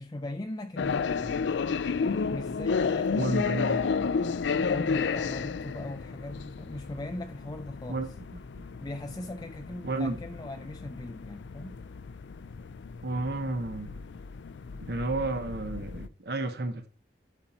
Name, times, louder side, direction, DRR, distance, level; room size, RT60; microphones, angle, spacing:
voice 1, 0.0-1.6 2.3-4.1 4.5-8.1 8.8-11.8, left 1 dB, 25° left, 0.4 m, -39 dB
sound 1, 0.8-16.1, left 5 dB, 90° left, 0.4 m, -32 dB
voice 2, 3.2-3.8 7.9-8.1 9.8-10.2 13.0-14.0 14.8-16.9, right 2 dB, 60° right, 1.0 m, -31 dB
12.0 x 4.3 x 4.3 m
head